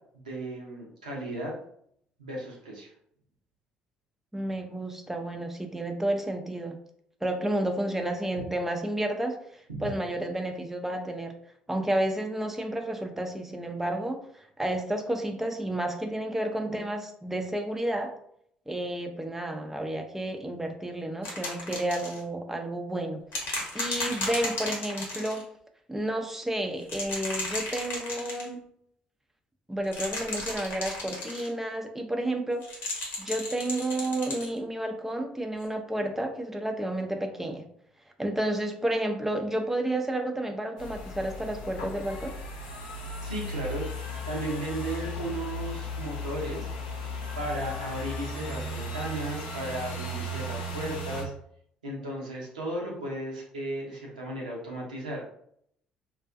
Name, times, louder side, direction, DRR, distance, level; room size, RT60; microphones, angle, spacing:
voice 1, 0.1-1.5 2.2-2.9 9.8-9.9 43.2-43.9 44.2-46.7 47.4-51.3 51.8-55.2, right 1 dB, 90° right, -2 dB, 0.6 m, -35 dB
voice 2, 4.3-6.8 7.2-11.4 11.7-14.2 14.6-18.1 18.7-25.4 25.9-28.6 29.7-32.7 33.2-37.6 38.2-42.3, right 1 dB, 5° right, 5 dB, 0.4 m, -31 dB
sound 1, 21.2-22.2 23.3-25.4 26.8-28.5 29.8-31.5 32.6-34.5 35.6-35.7, left 2 dB, 60° left, 0.9 m, -34 dB
sound 2, 40.8-51.2, left 1 dB, 80° left, 0.4 m, -36 dB
2.3 x 2.2 x 2.4 m, 0.68 s
hypercardioid pair, 50°, 4 cm